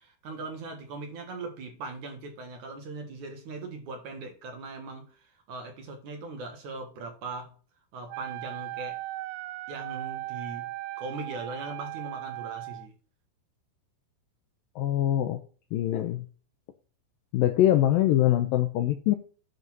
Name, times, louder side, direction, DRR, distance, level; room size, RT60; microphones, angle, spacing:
voice 1, 0.0-7.6 7.9-9.0 9.7-10.7 11.0-12.9, right 3 dB, 55° right, 2.6 m, -40 dB
Wind instrument woodwind instrument, 8.1-12.9, right 18 dB, 85° right, 2.8 m, -38 dB
voice 2, 14.8-15.4 15.7-16.3 17.3-19.2, left 13 dB, 85° left, 2.1 m, -23 dB
11.0 x 4.1 x 6.0 m
omnidirectional pair, 4.8 m